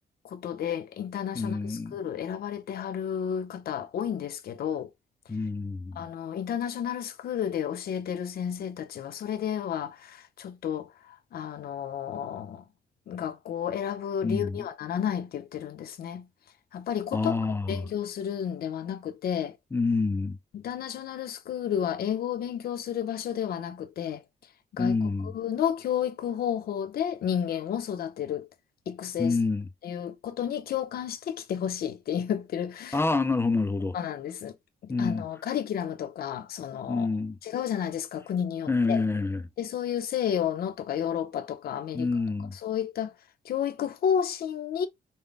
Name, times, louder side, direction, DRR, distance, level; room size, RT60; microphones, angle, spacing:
voice 1, 0.2-4.9 6.0-12.6 13.1-16.3 16.7-19.6 20.5-24.2 24.7-25.0 25.2-28.5 28.9-29.4 29.8-33.0 33.9-34.5 34.8-37.1 37.4-39.0 39.6-42.1 42.5-43.1 43.4-44.9, left 9 dB, 70° left, 0.8 m, -31 dB
voice 2, 1.3-2.0 5.3-6.0 14.2-14.6 17.1-17.8 19.7-20.4 24.8-25.3 29.2-29.7 32.9-34.0 34.9-35.3 36.9-37.4 38.7-39.4 41.9-42.5, left 3 dB, 15° left, 0.4 m, -27 dB
5.4 x 2.2 x 3.3 m
cardioid pair, 135°, 16 cm